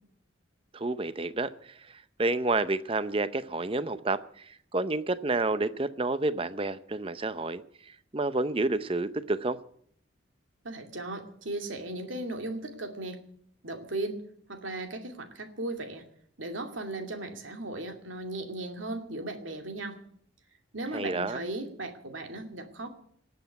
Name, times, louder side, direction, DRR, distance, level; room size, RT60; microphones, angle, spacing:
voice 1, 0.7-9.6 20.9-21.4, right 2 dB, 30° right, 14 dB, 0.6 m, -30 dB
voice 2, 10.6-13.2 13.6-14.2 14.5-16.0 16.4-20.0 20.7-22.9, right 2 dB, 80° right, 5 dB, 2.4 m, -36 dB
19.0 x 8.1 x 9.3 m, 0.65 s
head